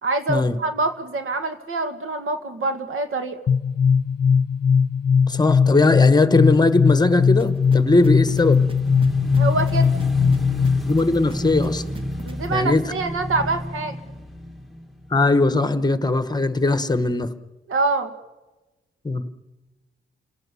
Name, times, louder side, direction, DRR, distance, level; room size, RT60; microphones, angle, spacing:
voice 1, 0.0-3.4 9.4-9.9 12.2-14.0 17.7-18.1, right 3 dB, 90° right, 9 dB, 2.1 m, -25 dB
sound 1, 3.5-11.0, left 6 dB, 50° left, 0.7 m, -19 dB
voice 2, 5.3-8.6 10.8-11.8 12.5-12.9 15.1-17.3 19.0-19.2, left 2 dB, 20° left, 13 dB, 1.2 m, -19 dB
Motorcycle / Engine, 7.2-15.4, equal, ahead, 1.7 m, -31 dB
sound 2, 7.4-12.5, right 4 dB, 25° right, 1.3 m, -41 dB
29.5 x 17.5 x 7.0 m, 1.1 s
wide cardioid pair, 110°, 21 cm